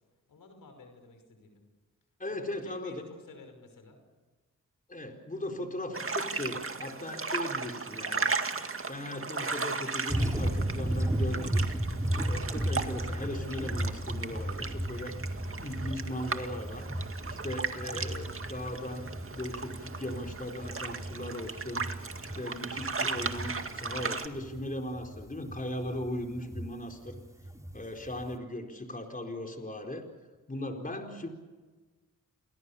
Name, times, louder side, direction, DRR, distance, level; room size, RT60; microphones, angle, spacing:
voice 1, 0.3-1.6 2.4-4.0, left 3 dB, 80° left, 6 dB, 5.6 m, -52 dB
voice 2, 2.2-3.1 4.9-8.3 8.9-11.7 12.2-15.2 15.5-16.9 17.4-21.9 22.3-27.2 27.7-30.0 30.5-31.3, left 1 dB, 25° left, 3 dB, 4.4 m, -38 dB
sound 1, 5.9-24.3, right 4 dB, 40° right, 2.1 m, -36 dB
sound 2, 10.1-28.3, right 1 dB, 10° right, 2.6 m, -35 dB
29.5 x 20.5 x 7.1 m, 1.3 s
cardioid pair, 50°, 32 cm